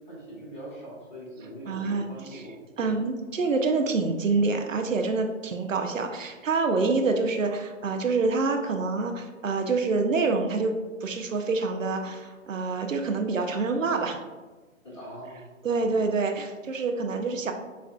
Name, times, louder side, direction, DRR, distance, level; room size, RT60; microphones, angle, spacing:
voice 1, 0.1-3.0 14.8-15.9, equal, 35° left, -5 dB, 1.4 m, -42 dB
voice 2, 1.7-2.4 2.8-14.2 15.6-17.5, right 3 dB, 70° right, 5 dB, 0.6 m, -27 dB
6.6 x 2.3 x 2.3 m, 1.3 s
figure-of-eight pair, 135°, 41 cm